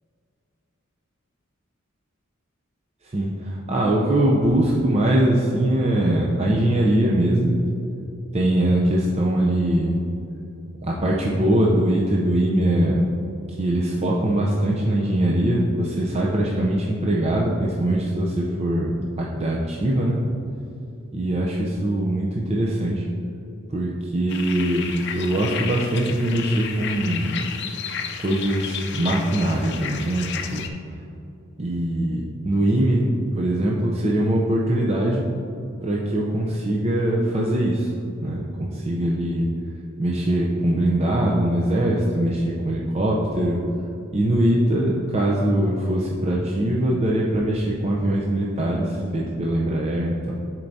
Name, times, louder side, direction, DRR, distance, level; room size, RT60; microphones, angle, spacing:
voice 1, 3.0-7.6 8.3-10.0 10.8-13.0 13.5-20.2 21.1-23.1 23.7-24.9 25.2-27.3 28.2-30.6 31.6-33.1 33.4-35.2 35.8-37.9 38.2-39.5 40.0-43.6 44.1-50.3, right 1 dB, 30° right, -4 dB, 0.5 m, -22 dB
sound 1, 24.3-30.7, left 7 dB, 55° left, 0.5 m, -32 dB
10.5 x 4.5 x 2.7 m, 2.8 s
head